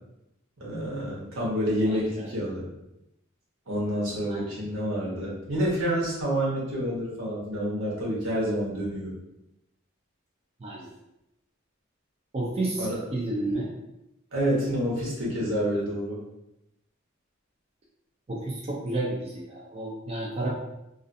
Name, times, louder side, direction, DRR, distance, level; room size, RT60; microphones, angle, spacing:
voice 1, 0.6-2.7 3.7-9.1 12.8-13.0 14.3-16.2, equal, 75° right, -5 dB, 0.9 m, -28 dB
voice 2, 12.3-12.9 13.1-13.7 18.3-20.5, right 2 dB, 30° right, -4 dB, 0.4 m, -31 dB
2.4 x 2.4 x 2.5 m, 0.88 s
head